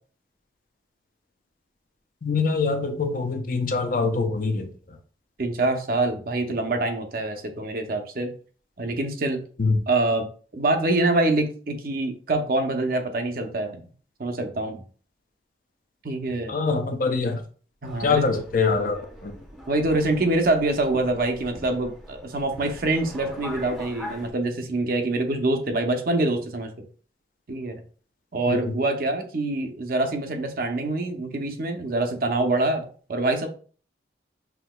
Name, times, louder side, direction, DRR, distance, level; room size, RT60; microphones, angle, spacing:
voice 1, 2.2-4.7 9.6-9.8 16.5-17.4 18.0-19.4 28.5-28.8, left 4 dB, 50° left, 6 dB, 0.5 m, -24 dB
voice 2, 5.4-8.3 8.8-9.4 9.9-10.3 10.5-13.8 14.2-14.8 16.0-16.5 17.8-18.2 19.7-26.7 27.5-27.8 28.3-33.5, right 2 dB, 50° right, 5 dB, 0.6 m, -25 dB
Subway metro underground, 17.8-24.3, equal, ahead, 0.7 m, -41 dB
5.7 x 2.8 x 2.2 m, 0.42 s
head